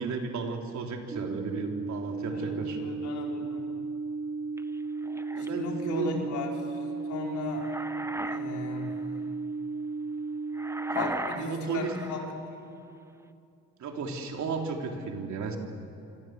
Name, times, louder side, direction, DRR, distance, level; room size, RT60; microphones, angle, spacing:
voice 1, 0.0-2.8 5.3-6.2 11.3-12.0 13.8-15.6, right 5 dB, 70° right, 2 dB, 3.7 m, -34 dB
sound 1, 1.1-11.1, right 4 dB, 25° right, 0.8 m, -35 dB
voice 2, 2.3-3.6 5.4-6.8 7.1-7.7 8.3-8.9 10.9-12.2, left 4 dB, 70° left, 0 dB, 4.9 m, -36 dB
sound 2, 4.6-5.5 7.3-8.4 8.8-9.0 10.5-12.3, right 1 dB, 10° right, 1.2 m, -37 dB
26.5 x 25.5 x 7.9 m, 2.6 s
cardioid pair, 90°, 30 cm